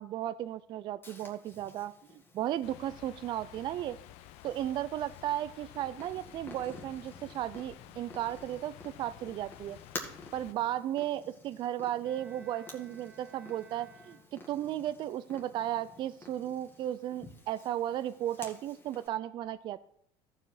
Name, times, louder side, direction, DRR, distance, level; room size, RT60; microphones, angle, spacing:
voice 1, 0.0-4.0 4.4-9.8 10.3-19.8, right 12 dB, 45° right, 13 dB, 0.3 m, -35 dB
Purr, 1.0-19.1, left 2 dB, 20° left, 1.8 m, -51 dB
sound 1, 2.6-10.5, left 15 dB, 70° left, 0.4 m, -52 dB
Bowed string instrument, 12.0-14.7, right 3 dB, 5° right, 1.1 m, -57 dB
14.0 x 4.8 x 4.5 m, 0.70 s
supercardioid pair, 120°, 11 cm